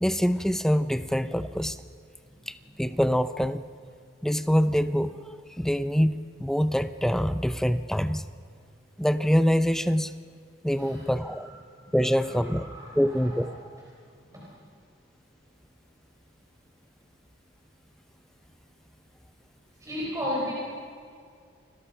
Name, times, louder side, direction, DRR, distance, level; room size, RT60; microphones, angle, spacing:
voice 1, 0.0-1.8 2.5-3.7 4.2-5.2 5.6-8.2 9.0-10.1 10.6-11.5 11.9-12.7 12.9-13.5, equal, ahead, 11 dB, 0.6 m, -25 dB
voice 2, 12.3-13.5 14.3-14.5 19.8-20.5, equal, 15° right, -5 dB, 4.5 m, -34 dB
29.5 x 21.5 x 5.7 m, 2.2 s
head